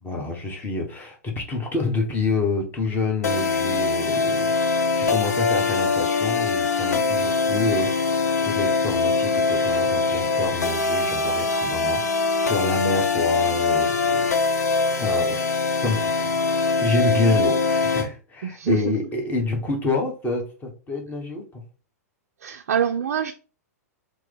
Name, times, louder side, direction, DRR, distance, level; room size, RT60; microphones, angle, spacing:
voice 1, 0.0-16.3 16.8-21.6, left 3 dB, 20° left, 1.1 m, -28 dB
sound 1, 3.2-18.1, left 4 dB, 80° left, 0.5 m, -22 dB
voice 2, 18.4-18.9 22.4-23.3, right 8 dB, 65° right, 0.3 m, -25 dB
2.9 x 2.1 x 3.8 m
figure-of-eight pair, 105°, 9 cm